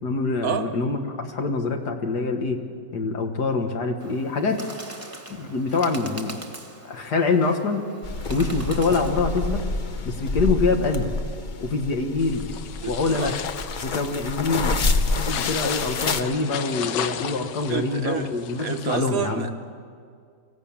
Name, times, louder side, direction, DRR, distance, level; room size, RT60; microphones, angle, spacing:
voice 1, 0.0-2.6 2.9-4.6 5.3-6.4 6.8-7.9 8.3-9.6 10.1-11.1 11.6-12.4 12.9-13.3 13.8-14.8 15.2-19.5, left 4 dB, 70° left, 2.1 m, -25 dB
Bird, 4.0-9.6, right 1 dB, 10° right, 1.2 m, -41 dB
Dirt Sliding, 8.0-16.2, left 3 dB, 45° left, 0.6 m, -28 dB
sound 1, 12.2-19.0, left 9 dB, 90° left, 1.5 m, -34 dB
voice 2, 12.8-13.3 17.7-18.3 18.6-19.7, right 7 dB, 60° right, 1.1 m, -29 dB
24.5 x 15.5 x 8.8 m
omnidirectional pair, 1.9 m